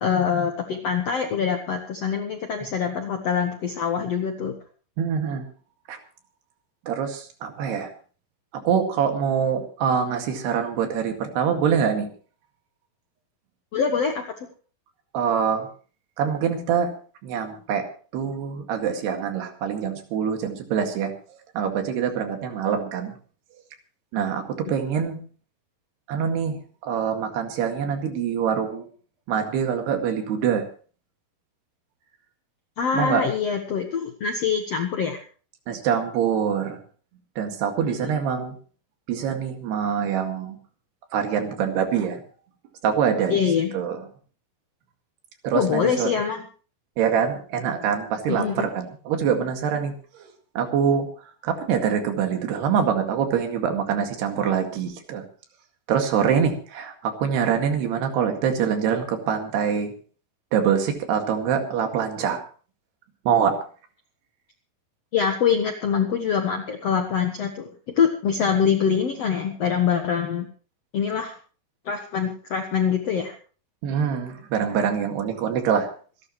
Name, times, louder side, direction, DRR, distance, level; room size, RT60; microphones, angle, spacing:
voice 1, 0.0-4.5 13.7-14.2 32.8-35.2 37.8-38.1 43.3-43.8 45.5-46.5 48.3-48.7 65.1-67.7 68.0-70.5 70.9-71.3 71.8-73.3, left 7 dB, 70° left, 5 dB, 1.5 m, -24 dB
voice 2, 5.0-5.5 5.9-6.0 6.9-7.9 8.5-12.1 15.1-15.7 16.2-16.9 17.2-17.9 18.1-21.2 21.6-23.1 24.1-25.2 26.1-28.9 29.3-30.6 32.9-33.3 35.7-36.8 37.4-38.5 39.1-40.6 41.1-42.2 42.8-43.4 43.7-44.0 45.4-46.1 47.0-50.3 50.6-51.1 51.4-55.2 55.9-59.9 60.5-62.4 63.3-63.6 73.8-75.9, right 7 dB, 80° right, 5 dB, 4.1 m, -24 dB
26.5 x 11.5 x 3.1 m, 0.39 s
omnidirectional pair, 4.7 m